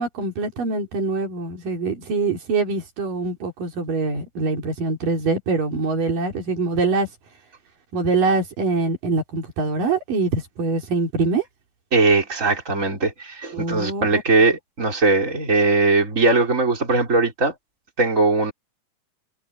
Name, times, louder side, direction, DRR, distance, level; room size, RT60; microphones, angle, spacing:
voice 1, 0.0-7.1 7.9-11.4 13.5-14.2, right 3 dB, 80° right, 5.6 m, -24 dB
voice 2, 11.9-17.5 18.0-18.5, right 3 dB, 20° right, 5.1 m, -19 dB
omnidirectional pair, 3.8 m